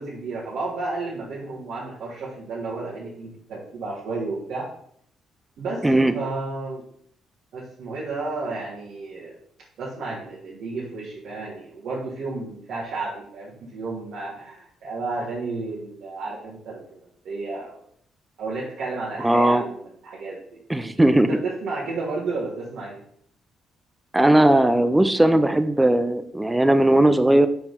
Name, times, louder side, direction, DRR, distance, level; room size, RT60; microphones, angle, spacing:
voice 1, 0.0-4.7 5.6-6.8 7.5-9.3 9.8-17.0 17.2-17.8 18.4-20.6 21.3-23.0, right 3 dB, 75° right, -6 dB, 1.8 m, -32 dB
voice 2, 5.8-6.1 19.2-19.6 20.7-21.3 24.1-27.5, right 1 dB, 10° right, 11 dB, 0.6 m, -18 dB
5.7 x 4.4 x 5.3 m, 0.64 s
cardioid pair, 90°, 0 cm